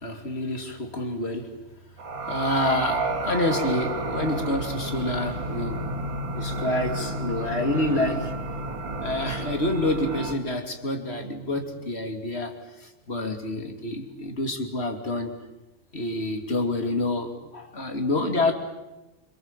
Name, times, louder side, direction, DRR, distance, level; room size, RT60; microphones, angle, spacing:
voice 1, 0.0-1.5 2.3-5.8 6.3-8.3 9.0-12.5 13.1-15.3 15.9-18.5, left 2 dB, 30° left, 5 dB, 2.9 m, -27 dB
sound 1, 2.0-10.3, right 2 dB, 70° right, 3.5 m, -31 dB
27.0 x 26.5 x 7.5 m, 1.0 s
omnidirectional pair, 2.1 m